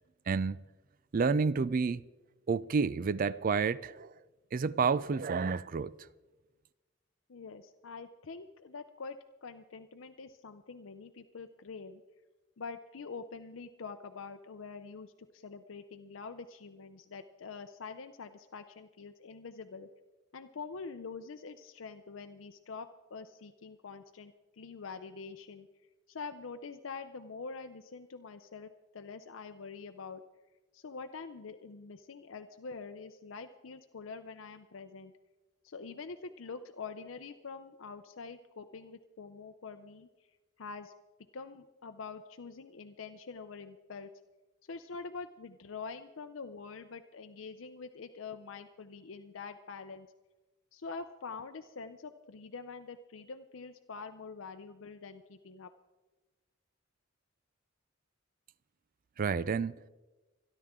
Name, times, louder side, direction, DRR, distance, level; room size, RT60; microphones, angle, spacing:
voice 1, 0.3-0.6 1.1-2.0 2.5-4.1 4.5-5.9 59.2-59.8, right 5 dB, 45° right, 0.4 m, -29 dB
voice 2, 7.3-12.0 12.6-19.9 20.3-25.7 26.1-30.2 30.7-35.1 35.6-40.1 40.6-40.9 41.3-44.1 44.7-50.1 50.7-55.7, left 4 dB, 90° left, 0.6 m, -45 dB
26.0 x 11.0 x 3.7 m
head